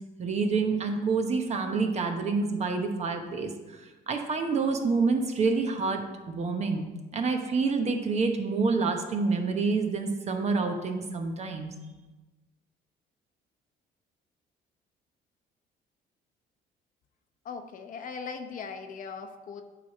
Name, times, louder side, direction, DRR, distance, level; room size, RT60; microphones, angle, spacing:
voice 1, 0.2-3.8 4.1-6.9 7.1-11.7, right 4 dB, 40° right, 5 dB, 1.0 m, -27 dB
voice 2, 17.4-19.6, left 5 dB, 50° left, 6 dB, 0.7 m, -39 dB
8.9 x 3.3 x 6.4 m, 1.1 s
cardioid pair, 110°, 17 cm